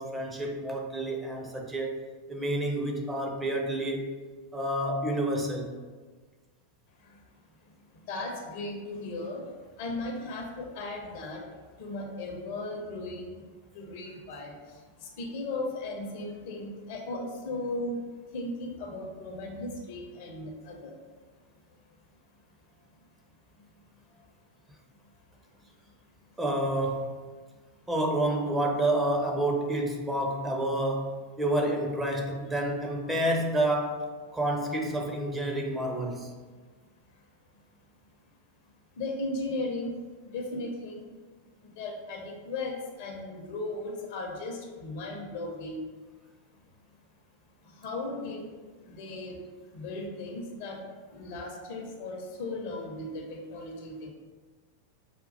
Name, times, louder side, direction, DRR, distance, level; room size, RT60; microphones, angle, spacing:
voice 1, 0.0-2.0 2.3-4.2 4.5-5.7 26.4-27.1 27.9-34.1 34.3-36.3, right 1 dB, 10° right, 0 dB, 0.5 m, -29 dB
voice 2, 8.1-9.4 9.8-11.4 11.8-13.3 13.8-14.5 15.2-18.0 18.3-20.9 39.0-39.9 40.3-41.0 41.8-45.8 47.8-48.5 48.9-49.4 49.7-50.8 51.1-54.1, left 2 dB, 50° left, 1 dB, 0.6 m, -36 dB
5.0 x 2.3 x 2.5 m, 1.4 s
figure-of-eight pair, 90°, 0 cm